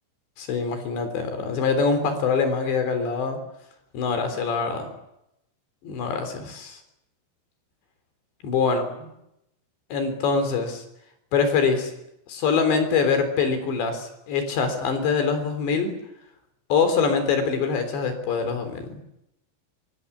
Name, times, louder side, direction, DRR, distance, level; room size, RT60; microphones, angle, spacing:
voice 1, 0.4-3.4 3.9-4.9 5.8-6.8 8.4-9.1 9.9-10.8 11.3-11.9 12.3-16.0 16.7-19.0, left 5 dB, 65° left, 8 dB, 5.9 m, -24 dB
25.0 x 24.5 x 8.6 m, 0.84 s
omnidirectional pair, 5.5 m